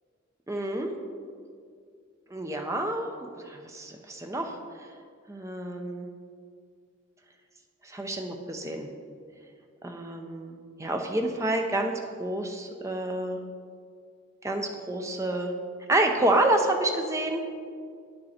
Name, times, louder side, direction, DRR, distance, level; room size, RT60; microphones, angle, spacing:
voice 1, 0.5-0.9 2.3-3.1 3.5-4.6 5.3-6.1 7.8-8.9 9.8-11.9 12.2-13.4 14.4-15.5 15.9-17.4, right 1 dB, 15° right, 3 dB, 0.6 m, -28 dB
9.7 x 6.6 x 4.3 m, 2.2 s
head